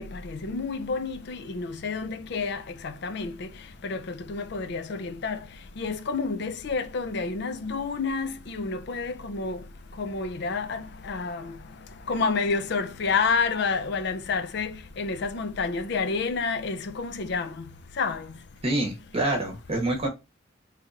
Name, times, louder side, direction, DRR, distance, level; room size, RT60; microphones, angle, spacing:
voice 1, 0.0-3.3 3.8-4.0 4.3-5.4 5.8-9.6 10.0-11.5 12.1-14.7 15.0-17.5 18.0-18.2, left 4 dB, 60° left, 0.5 m, -29 dB
voice 2, 18.6-20.1, right 1 dB, 30° right, 1.0 m, -26 dB
3.2 x 2.8 x 3.6 m
head